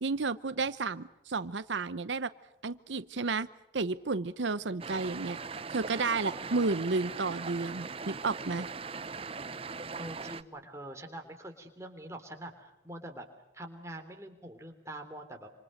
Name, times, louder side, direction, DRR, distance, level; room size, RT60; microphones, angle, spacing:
voice 1, 0.0-2.3 2.6-3.5 3.7-8.7, right 3 dB, 85° right, 14 dB, 0.8 m, -32 dB
sound 1, 4.8-10.4, right 4 dB, 30° right, 0.9 m, -40 dB
voice 2, 6.3-6.8 9.3-13.3 13.5-15.5, right 1 dB, 15° right, 4 dB, 3.4 m, -45 dB
27.0 x 27.0 x 6.6 m, 0.87 s
head